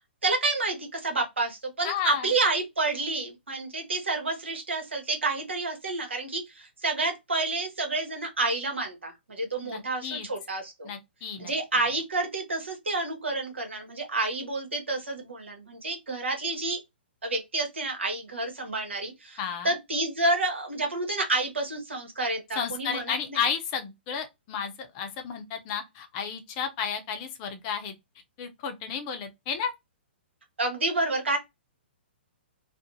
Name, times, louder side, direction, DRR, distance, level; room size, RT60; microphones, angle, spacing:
voice 1, 0.2-10.9 11.4-16.8 17.2-19.4 19.6-23.4 30.6-31.4, right 2 dB, 85° right, 0.9 m, -29 dB
voice 2, 1.8-2.3 9.6-10.3 10.8-11.5 19.4-19.8 22.6-27.9 28.4-29.7, left 7 dB, 35° left, 0.6 m, -32 dB
2.5 x 2.1 x 2.6 m
hypercardioid pair, 125°, 6 cm